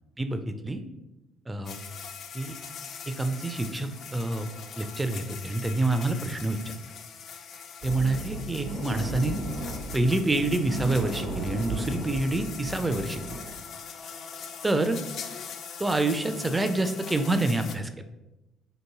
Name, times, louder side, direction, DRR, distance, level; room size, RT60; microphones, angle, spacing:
voice 1, 0.2-0.8 1.5-1.8 2.3-2.5 3.1-4.5 4.8-6.7 7.8-9.4 9.9-13.2 14.6-15.0 15.8-17.9, right 2 dB, 20° right, 8 dB, 0.4 m, -27 dB
sound 1, 1.6-17.8, left 6 dB, 55° left, 0.3 m, -42 dB
sound 2, 7.8-13.5, right 1 dB, 75° right, 0.9 m, -35 dB
2.9 x 2.5 x 3.5 m, 0.99 s
hypercardioid pair, 50°, 0 cm